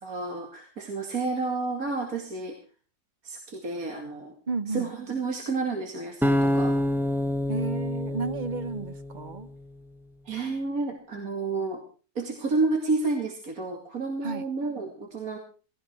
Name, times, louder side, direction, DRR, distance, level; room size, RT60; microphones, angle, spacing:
voice 1, 0.0-2.6 3.2-4.3 4.7-6.8 10.3-11.8 12.1-15.4, right 3 dB, 60° right, 3 dB, 2.9 m, -30 dB
voice 2, 4.5-4.9 7.5-9.5 14.2-14.4, right 4 dB, 30° right, 12 dB, 1.3 m, -32 dB
sound 1, 6.2-9.4, left 1 dB, ahead, 0.8 m, -27 dB
18.5 x 16.5 x 4.5 m, 0.37 s
omnidirectional pair, 1.7 m